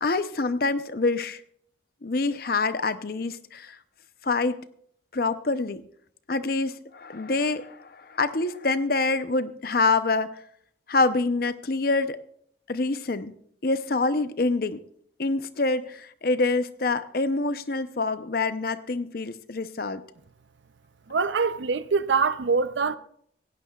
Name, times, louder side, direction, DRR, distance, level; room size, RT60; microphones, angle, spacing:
voice 1, 0.0-1.4 2.0-3.8 4.2-4.6 5.1-5.8 6.3-10.4 10.9-12.2 12.7-13.3 13.6-14.8 15.2-20.0, left 3 dB, 55° left, 0.7 m, -26 dB
voice 2, 21.1-23.0, right 5 dB, 80° right, 0.6 m, -24 dB
17.0 x 16.5 x 2.4 m
head